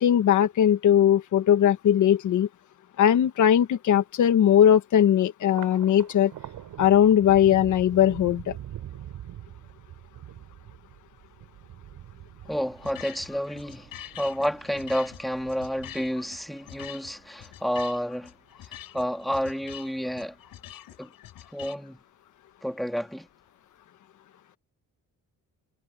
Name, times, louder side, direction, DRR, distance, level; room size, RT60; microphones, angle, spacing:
voice 1, 0.0-2.5 3.0-6.3 6.8-8.6, left 10 dB, 60° left, 1.4 m, -19 dB
Thunder, 5.4-18.1 18.5-19.3 19.6-20.5, right 11 dB, 75° right, 6.9 m, -44 dB
voice 2, 12.5-13.9 14.1-18.3 18.9-20.3 21.0-21.1 21.5-22.0 22.6-23.3, equal, ahead, 2.2 m, -30 dB
sound 1, 12.8-21.8, left 12 dB, 85° left, 7.4 m, -45 dB
cardioid pair, 175°, 33 cm